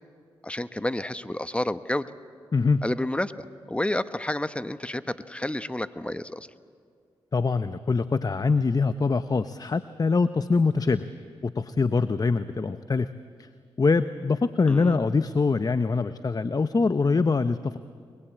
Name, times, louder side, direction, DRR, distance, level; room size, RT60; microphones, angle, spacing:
voice 1, 0.4-2.0 2.8-6.5 14.7-15.0, left 1 dB, 10° left, 13 dB, 1.0 m, -30 dB
voice 2, 2.5-2.8 7.3-11.1 11.4-13.1 13.4-13.5 13.8-17.8, left 4 dB, 40° left, 12 dB, 0.8 m, -24 dB
22.5 x 21.0 x 8.6 m, 2.1 s
supercardioid pair, 45°, 10 cm